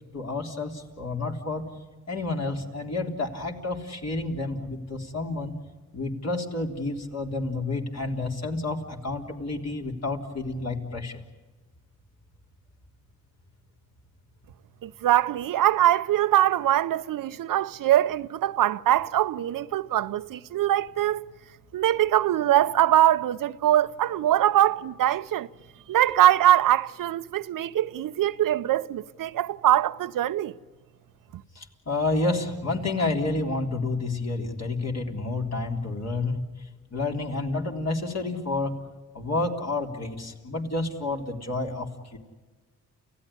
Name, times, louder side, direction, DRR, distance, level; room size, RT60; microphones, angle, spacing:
voice 1, 0.1-1.7 2.1-5.6 5.9-11.2 31.6-36.4 36.9-38.8 39.1-42.2, left 2 dB, 45° left, 3.7 m, -30 dB
voice 2, 14.8-21.2 21.7-25.5 25.9-30.5, right 12 dB, 70° right, 0.7 m, -22 dB
29.5 x 16.0 x 9.9 m
supercardioid pair, 60°, 35 cm